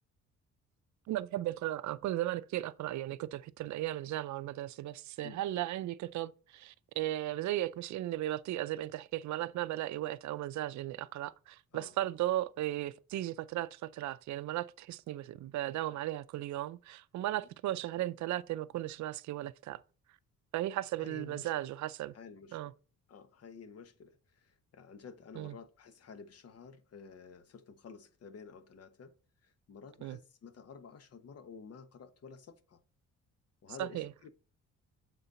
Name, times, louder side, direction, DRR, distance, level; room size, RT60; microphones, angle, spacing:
voice 1, 1.1-19.8 20.5-22.1 22.5-22.7 25.4-25.5 30.0-30.2 33.8-34.1, right 14 dB, 70° right, 0.5 m, -36 dB
voice 2, 21.0-21.5 22.1-22.6 23.1-29.1 29.4-32.8 33.6-34.3, left 5 dB, 55° left, 1.0 m, -51 dB
7.9 x 4.0 x 4.1 m
cardioid pair, 90°, 30 cm